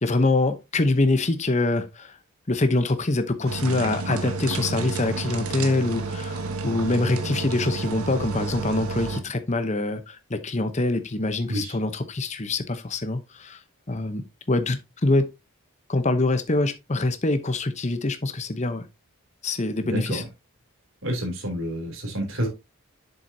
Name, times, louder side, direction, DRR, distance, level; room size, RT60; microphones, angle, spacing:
voice 1, 0.0-2.1 2.5-13.6 13.9-14.2 14.5-15.2 15.9-18.8 19.4-20.2, left 2 dB, 30° left, 0.8 m, -24 dB
sound 1, 3.5-9.2, right 4 dB, 85° right, 1.2 m, -30 dB
voice 2, 19.8-20.2 21.0-22.5, equal, 60° right, 3.2 m, -28 dB
7.7 x 7.0 x 2.8 m
head